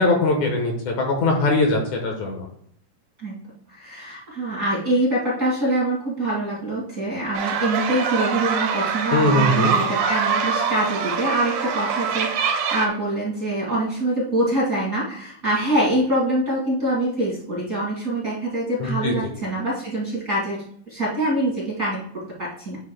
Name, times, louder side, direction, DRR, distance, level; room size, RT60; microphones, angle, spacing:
voice 1, 0.0-2.5 9.1-9.8 18.8-19.1, left 2 dB, 65° left, 2 dB, 2.3 m, -21 dB
voice 2, 3.7-22.8, right 1 dB, 30° right, -7 dB, 1.9 m, -25 dB
sound 1, 7.3-12.9, right 6 dB, 85° right, 2.9 m, -24 dB
10.0 x 6.3 x 2.2 m, 0.67 s
omnidirectional pair, 4.0 m